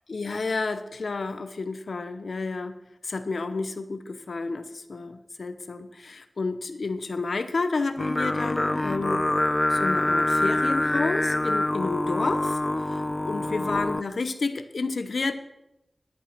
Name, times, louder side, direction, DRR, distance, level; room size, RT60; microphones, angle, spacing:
voice 1, 0.1-9.3 9.7-12.6 12.9-15.3, left 3 dB, 80° left, 10 dB, 0.9 m, -30 dB
Singing, 8.0-14.0, left 1 dB, 25° left, 0.3 m, -25 dB
11.0 x 8.9 x 6.0 m, 0.88 s
wide cardioid pair, 75°, 0 cm